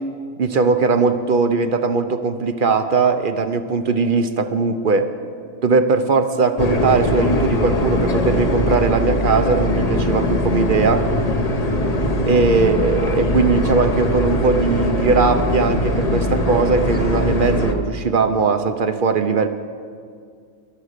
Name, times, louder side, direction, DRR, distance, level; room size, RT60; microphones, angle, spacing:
voice 1, 0.4-5.1 5.6-11.1 12.2-19.5, right 4 dB, 50° right, 9 dB, 0.7 m, -19 dB
sound 1, 6.6-17.7, left 1 dB, 35° left, 0.9 m, -21 dB
22.0 x 7.5 x 6.6 m, 2.2 s
omnidirectional pair, 1.4 m